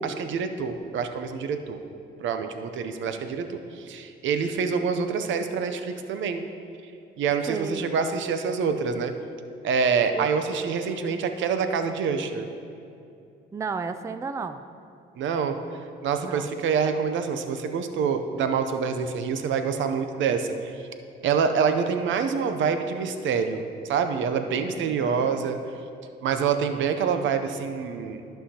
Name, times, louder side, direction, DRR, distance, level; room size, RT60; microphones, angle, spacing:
voice 1, 0.0-1.8 2.2-6.4 7.2-9.1 9.6-12.5 15.2-15.6 16.0-20.8 21.2-25.6 26.2-28.2, right 6 dB, 75° right, 7 dB, 0.6 m, -26 dB
voice 2, 7.4-7.9 10.1-10.3 13.5-14.6 16.2-16.5, right 4 dB, 15° right, 9 dB, 0.3 m, -34 dB
14.0 x 5.7 x 2.8 m, 2.6 s
cardioid pair, 90°, 20 cm